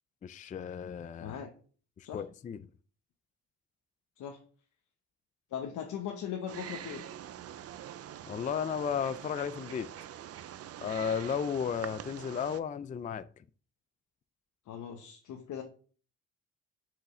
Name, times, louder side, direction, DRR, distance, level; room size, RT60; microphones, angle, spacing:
voice 1, 0.2-1.4 2.0-2.6 8.3-9.9 10.8-13.2, left 7 dB, 25° left, 0.3 m, -34 dB
voice 2, 1.2-1.5 2.0-2.2 4.2-4.4 5.5-7.0 14.7-15.6, left 8 dB, 70° left, 1.0 m, -39 dB
Wild animals, 6.5-12.6, right 10 dB, 55° right, 0.5 m, -45 dB
6.6 x 5.0 x 3.7 m
cardioid pair, 90°, 30 cm